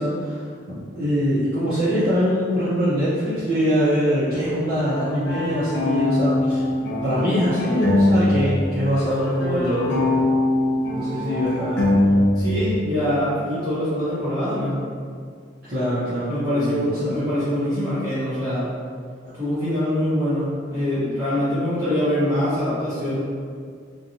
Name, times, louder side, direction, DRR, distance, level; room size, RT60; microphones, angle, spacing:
voice 1, 0.0-6.6 7.0-10.0 10.9-11.8 15.7-17.2 19.2-19.3, equal, 50° right, -12 dB, 0.6 m, -23 dB
sound 1, 4.8-8.7 8.9-12.7, left 1 dB, 65° left, 0.5 m, -22 dB
voice 2, 12.3-14.8 16.3-18.7 19.3-23.2, equal, 20° right, -13 dB, 1.0 m, -24 dB
2.6 x 2.2 x 2.8 m, 2.1 s
head